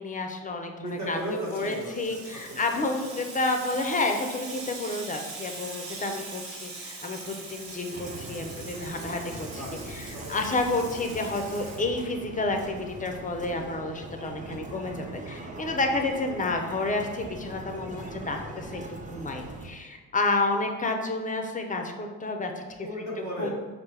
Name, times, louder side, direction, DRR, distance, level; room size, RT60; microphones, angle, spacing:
voice 1, 0.0-1.2 1.5-9.6 9.9-22.6 23.4-23.5, left 2 dB, 20° left, 4 dB, 0.6 m, -30 dB
voice 2, 0.8-2.8 9.5-9.7 10.1-10.6 22.8-23.5, right 1 dB, 45° right, -4 dB, 1.1 m, -36 dB
Water tap faucet / Sink (filling or washing), 1.0-12.4, right 3 dB, 75° right, 1.0 m, -42 dB
sound 1, 7.9-19.7, right 2 dB, 20° right, 0.7 m, -41 dB
4.8 x 2.2 x 3.3 m, 1.4 s
supercardioid pair, 65°, 39 cm